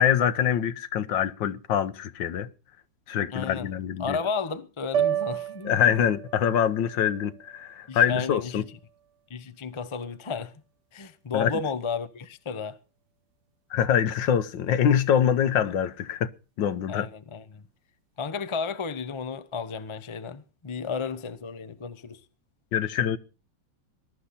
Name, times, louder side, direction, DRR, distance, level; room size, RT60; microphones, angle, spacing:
voice 1, 0.0-2.5 3.1-4.2 5.6-8.6 11.3-11.5 13.7-16.3 16.6-17.1 22.7-23.2, left 9 dB, 70° left, 1.6 m, -24 dB
voice 2, 3.3-3.7 4.0-6.0 7.9-8.8 9.3-10.5 10.9-12.8 16.9-17.7 18.2-22.2, left 5 dB, 40° left, 0.4 m, -33 dB
sound 1, 4.9-9.2, right 10 dB, 60° right, 1.4 m, -33 dB
20.5 x 12.0 x 4.3 m
omnidirectional pair, 2.2 m